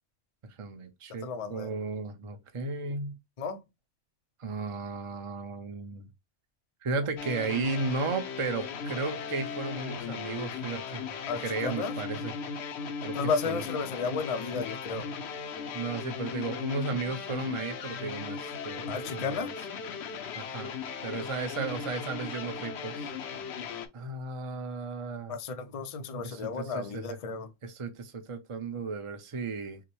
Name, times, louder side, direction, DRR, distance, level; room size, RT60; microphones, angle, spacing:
voice 1, 0.6-3.2 4.4-6.1 6.8-11.0 11.4-12.3 13.0-13.2 13.5-13.6 15.7-19.5 20.3-20.8 21.0-23.1 23.9-25.3 26.2-26.4 26.7-27.2 27.6-29.8, right 4 dB, 35° right, 0.6 m, -34 dB
voice 2, 1.2-1.7 3.4-3.6 11.3-11.9 13.1-15.1 18.9-19.5 25.3-27.5, left 5 dB, 45° left, 0.5 m, -33 dB
sound 1, 7.2-23.9, left 6 dB, 65° left, 0.9 m, -37 dB
5.8 x 2.1 x 3.0 m
omnidirectional pair, 1.3 m